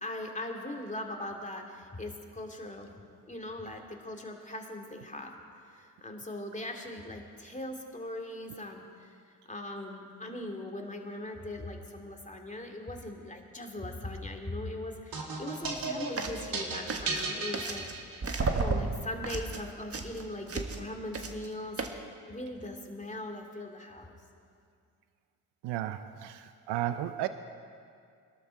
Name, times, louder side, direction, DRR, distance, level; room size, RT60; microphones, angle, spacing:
voice 1, 0.0-2.9 3.3-5.3 5.7-9.2 9.5-24.1, left 1 dB, 20° left, 2 dB, 2.6 m, -40 dB
sound 1, 15.1-18.5, right 3 dB, 55° right, 2.4 m, -35 dB
sound 2, 15.6-15.8 16.2-16.5 16.9-18.0 18.2-20.9 21.1-21.5 21.8-21.9, right 3 dB, 35° right, 1.6 m, -33 dB
voice 2, 25.6-27.3, right 13 dB, 80° right, 11 dB, 0.6 m, -33 dB
21.5 x 12.5 x 4.6 m, 2.3 s
supercardioid pair, 50°, 41 cm